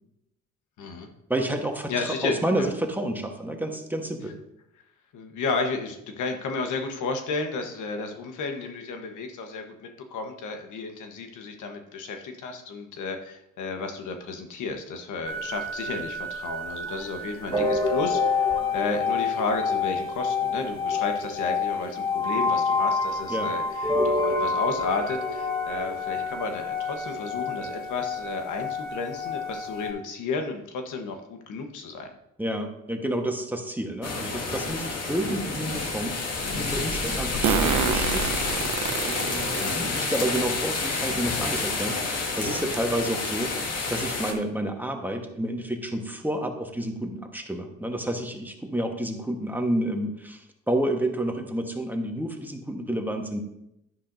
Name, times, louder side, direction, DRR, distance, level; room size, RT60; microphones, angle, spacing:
voice 1, 0.8-1.1 1.9-2.7 5.1-32.1 39.6-40.0, left 4 dB, 80° left, 5 dB, 1.3 m, -32 dB
voice 2, 1.3-4.4 23.3-23.5 32.4-36.2 36.6-38.4 39.0-43.5 43.9-53.4, right 1 dB, 5° right, 3 dB, 1.3 m, -30 dB
sound 1, 15.2-29.9, left 3 dB, 15° left, 4.0 m, -28 dB
sound 2, 34.0-44.3, left 3 dB, 55° left, 1.7 m, -29 dB
Fart, 34.7-34.8 37.4-39.7 40.4-40.5 41.7-41.8 42.2-42.3 42.7-43.0, right 8 dB, 75° right, 0.9 m, -27 dB
11.0 x 9.9 x 2.7 m, 0.83 s
cardioid pair, 90°, 30 cm